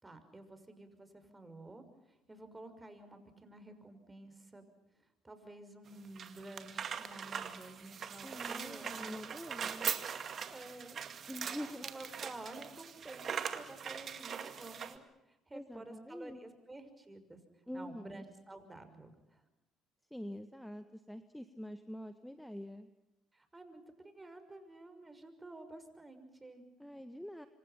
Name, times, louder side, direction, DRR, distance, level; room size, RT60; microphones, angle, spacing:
voice 1, 0.0-4.6 5.2-9.0 10.5-11.0 11.8-17.4 17.7-19.4 23.3-26.6, right 2 dB, 20° right, 9 dB, 6.0 m, -51 dB
sound 1, 5.9-15.0, right 7 dB, 50° right, 2.2 m, -41 dB
voice 2, 8.2-9.9 11.3-11.9 15.5-16.4 17.7-18.2 20.1-22.9 26.8-27.5, equal, 5° left, 10 dB, 1.7 m, -45 dB
27.5 x 26.0 x 5.9 m, 0.94 s
hypercardioid pair, 60°, 0 cm